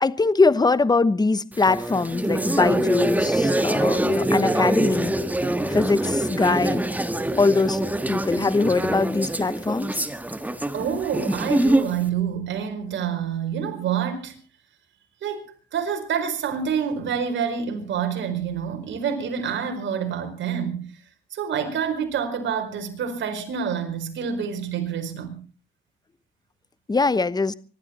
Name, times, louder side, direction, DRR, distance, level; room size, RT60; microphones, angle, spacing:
voice 1, 0.0-5.1 5.7-6.8 7.4-7.8 8.1-9.9 26.9-27.5, left 3 dB, 20° left, 1.0 m, -22 dB
sound 1, 1.5-12.0, right 1 dB, 10° right, 1.6 m, -24 dB
voice 2, 10.7-14.3 15.2-15.4 15.7-20.9 21.3-25.4, right 7 dB, 70° right, 4.7 m, -27 dB
25.0 x 12.5 x 4.3 m
cardioid pair, 90°, 20 cm